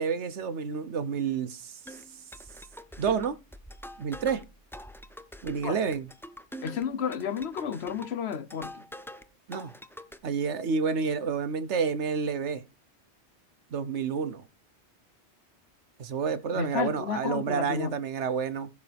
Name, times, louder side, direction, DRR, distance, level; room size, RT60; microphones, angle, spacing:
voice 1, 0.0-1.7 3.0-3.4 4.0-4.4 5.4-6.1 9.5-9.7 10.2-12.6 13.7-14.4 16.0-18.7, right 6 dB, 80° right, 1.3 m, -29 dB
sound 1, 1.9-9.3 9.5-10.2, equal, 5° left, 0.4 m, -45 dB
voice 2, 6.6-8.8 16.5-18.0, left 8 dB, 70° left, 1.0 m, -32 dB
15.0 x 6.8 x 3.4 m
omnidirectional pair, 1.2 m